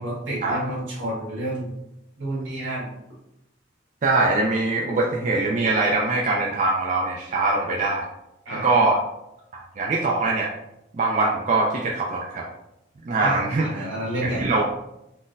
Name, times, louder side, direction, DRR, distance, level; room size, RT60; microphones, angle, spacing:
voice 1, 0.0-1.7 2.2-2.9 8.4-8.8 13.2-14.4, right 1 dB, 80° right, -6 dB, 1.4 m, -29 dB
voice 2, 4.0-8.0 8.5-9.0 9.8-10.5 10.9-12.4 13.1-13.6 14.2-14.6, right 3 dB, 40° right, -2 dB, 0.3 m, -22 dB
3.9 x 2.0 x 2.5 m, 0.86 s
head